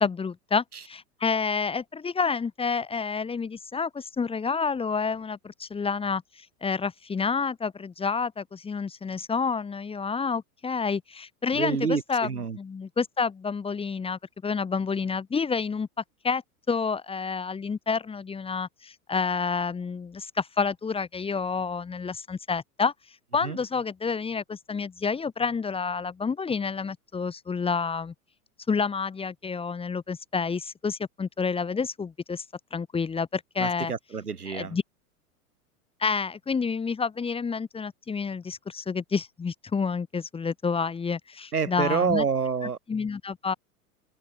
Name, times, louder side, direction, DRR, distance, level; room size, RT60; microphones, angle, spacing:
voice 1, 0.0-15.9 16.2-16.4 16.7-22.9 23.3-28.1 28.7-32.4 32.7-33.9 34.5-34.8 36.0-42.2 42.9-43.5, left 5 dB, 10° left, 1.1 m, -29 dB
voice 2, 11.5-12.6 23.4-23.6 33.6-34.8 41.5-42.8, right 6 dB, 90° right, 1.4 m, -27 dB
figure-of-eight pair, 90°, 44 cm